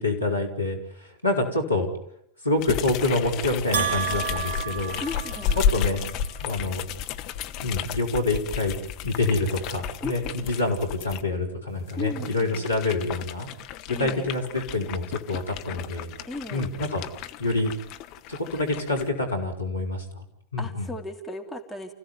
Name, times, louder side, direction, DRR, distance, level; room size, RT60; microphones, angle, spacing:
voice 1, 0.0-1.9 2.4-5.0 5.5-6.0 6.4-6.9 7.6-8.7 9.0-13.5 14.0-16.1 16.5-17.0 17.4-17.7 18.3-20.2 20.5-20.9, left 2 dB, 85° left, 2 dB, 4.9 m, -27 dB
sound 1, 2.6-11.2 11.8-19.1, left 8 dB, 40° left, 1.4 m, -33 dB
Bell, 3.7-5.9, right 7 dB, 50° right, 1.9 m, -30 dB
voice 2, 5.0-5.6 10.0-10.4 12.0-12.7 13.9-14.3 16.3-16.7 20.6-21.9, left 2 dB, 5° left, 2 dB, 3.2 m, -36 dB
29.5 x 16.5 x 9.6 m, 0.74 s
figure-of-eight pair, 90°, 0 cm